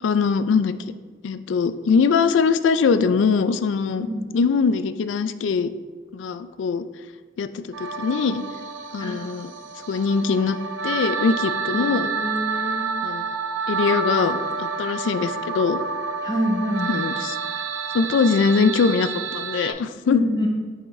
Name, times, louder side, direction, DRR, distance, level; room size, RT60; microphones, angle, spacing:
voice 1, 0.0-0.7 1.2-4.1 4.3-5.7 6.1-6.8 7.4-8.4 8.9-9.5 9.9-10.6 10.8-12.1 13.0-13.2 13.7-15.8 16.9-17.4 17.9-20.2, left 5 dB, 85° left, 12 dB, 0.3 m, -22 dB
voice 2, 4.0-4.3 9.0-9.2 11.7-12.9 16.2-17.0 20.1-20.5, equal, 25° left, 1 dB, 0.8 m, -26 dB
sound 1, 7.7-19.7, right 5 dB, 90° right, 0.5 m, -29 dB
5.9 x 5.4 x 3.2 m, 1.5 s
head